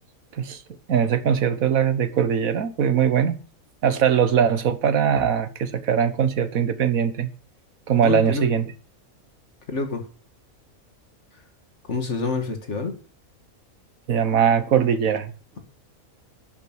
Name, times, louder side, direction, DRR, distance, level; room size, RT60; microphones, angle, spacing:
voice 1, 0.9-3.4 3.8-7.3 7.9-8.6 14.1-15.3, right 8 dB, 70° right, 1.6 m, -21 dB
voice 2, 8.0-8.4 9.7-10.0 11.9-13.0, left 4 dB, 50° left, 2.4 m, -27 dB
11.0 x 8.4 x 6.3 m
omnidirectional pair, 1.5 m